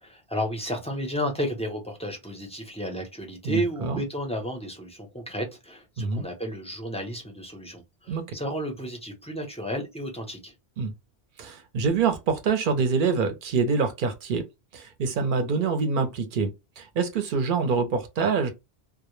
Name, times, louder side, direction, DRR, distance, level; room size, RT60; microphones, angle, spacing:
voice 1, 0.0-10.5, equal, 10° left, 0.4 m, -32 dB
voice 2, 3.4-4.0 6.0-6.2 8.1-8.2 10.8-10.9 11.4-14.4 14.7-16.5 16.8-18.5, right 5 dB, 60° right, 0.7 m, -25 dB
2.0 x 2.0 x 3.0 m
omnidirectional pair, 1.1 m